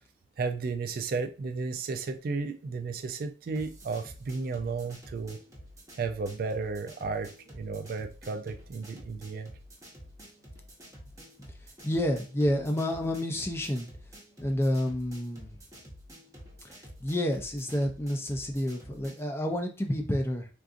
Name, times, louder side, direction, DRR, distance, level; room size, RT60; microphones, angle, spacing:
voice 1, 0.4-5.4 6.0-9.5, right 4 dB, 50° right, 0.3 m, -33 dB
sound 1, 3.5-19.3, equal, 20° right, 0.8 m, -50 dB
voice 2, 11.8-13.9 14.4-15.5 17.0-20.5, left 1 dB, 15° left, 0.4 m, -29 dB
3.6 x 2.5 x 2.5 m
head